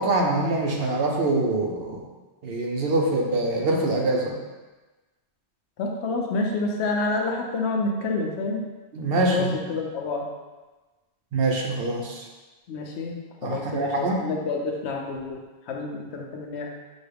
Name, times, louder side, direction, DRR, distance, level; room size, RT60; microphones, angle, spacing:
voice 1, 0.0-2.0 2.4-4.3 8.9-9.5 11.3-12.3 13.4-14.3, right 2 dB, 65° right, 0 dB, 0.9 m, -24 dB
voice 2, 5.8-8.6 9.1-10.3 12.7-15.4 15.7-16.7, left 3 dB, 85° left, 0 dB, 1.0 m, -28 dB
6.2 x 2.3 x 3.3 m, 1.2 s
omnidirectional pair, 1.1 m